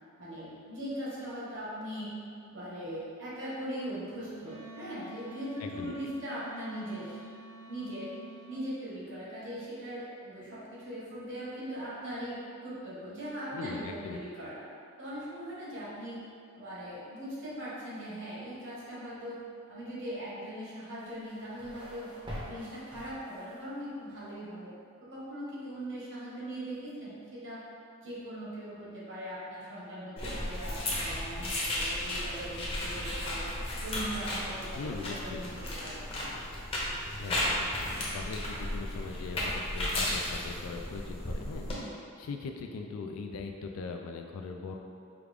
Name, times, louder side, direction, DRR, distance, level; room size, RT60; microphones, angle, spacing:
voice 1, 0.2-2.1 2.4-7.2 7.7-8.1 8.5-14.6 15.0-16.2 16.5-19.4 19.7-22.1 22.4-24.7 25.1-27.6 28.0-33.5 33.8-36.0, equal, 60° right, -8 dB, 1.2 m, -40 dB
Wind instrument woodwind instrument, 4.4-8.6, right 1 dB, 85° right, 1.0 m, -49 dB
voice 2, 5.6-5.9 13.5-14.2 34.8-35.4 37.1-44.8, left 4 dB, 85° left, 3 dB, 0.3 m, -40 dB
sound 1, 21.0-23.7, equal, 20° right, 0.6 m, -45 dB
sound 2, 30.2-41.7, left 1 dB, 25° left, 0.7 m, -34 dB
4.8 x 2.4 x 3.4 m, 2.5 s
head